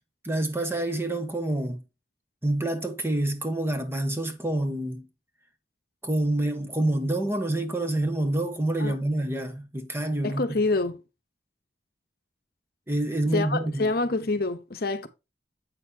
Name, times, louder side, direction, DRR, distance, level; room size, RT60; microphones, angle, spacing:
voice 1, 0.2-1.8 2.4-5.1 6.0-10.4 12.9-13.9, right 1 dB, 15° right, 1.3 m, -27 dB
voice 2, 10.2-11.0 13.3-15.1, left 3 dB, 55° left, 1.0 m, -26 dB
8.4 x 6.6 x 2.8 m
head